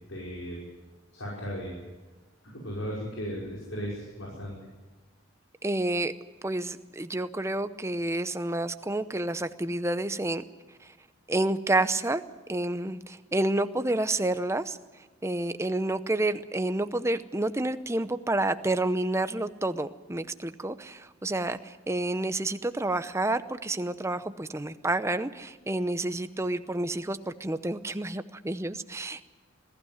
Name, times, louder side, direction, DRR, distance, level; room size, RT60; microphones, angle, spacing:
voice 1, 0.1-0.6 1.1-1.7 2.4-4.5, equal, 75° left, -4 dB, 5.6 m, -36 dB
voice 2, 5.6-6.1 6.4-10.4 10.8-10.9 11.3-12.2 12.5-14.8 15.2-29.2, right 2 dB, 15° right, 11 dB, 0.7 m, -29 dB
21.0 x 15.0 x 9.5 m, 1.2 s
head